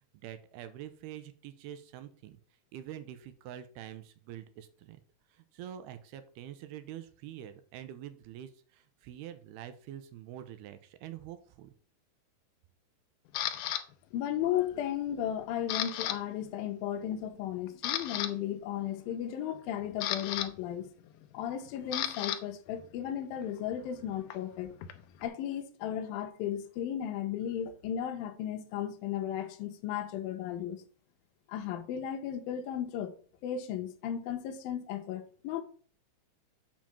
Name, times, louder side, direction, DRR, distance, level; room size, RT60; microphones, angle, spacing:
voice 1, 0.2-2.4 2.7-5.0 5.3-11.7, right 11 dB, 85° right, 2.8 m, -46 dB
Camera, 13.3-13.8 14.4-14.8 15.1-16.2 16.4-16.6 17.2-17.3 17.7-18.3 19.5-22.4 22.7-25.3, left 11 dB, 90° left, 1.8 m, -35 dB
voice 2, 14.1-20.8 21.3-24.8 25.2-30.8 31.5-33.1 33.4-35.6, left 10 dB, 75° left, 2.6 m, -35 dB
7.5 x 5.0 x 5.7 m
omnidirectional pair, 4.6 m